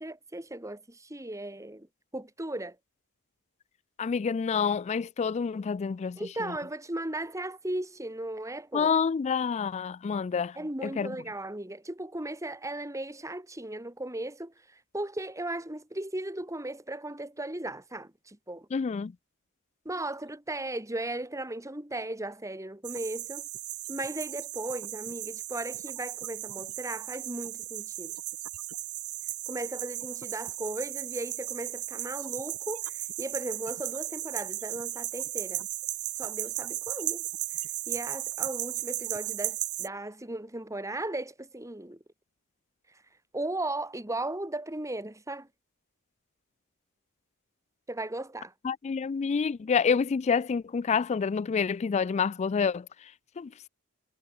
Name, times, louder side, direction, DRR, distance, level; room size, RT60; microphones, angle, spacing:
voice 1, 0.0-1.9 2.1-2.8 6.2-8.9 10.6-18.7 19.8-23.5 23.9-28.1 29.5-35.6 36.2-37.3 37.9-42.0 43.3-45.5 47.9-48.5, right 1 dB, 15° right, 2.8 m, -36 dB
voice 2, 4.0-6.6 8.7-10.6 10.8-11.2 18.7-19.1 48.6-53.7, left 6 dB, 30° left, 0.3 m, -28 dB
sound 1, 22.8-39.9, right 16 dB, 90° right, 2.7 m, -36 dB
head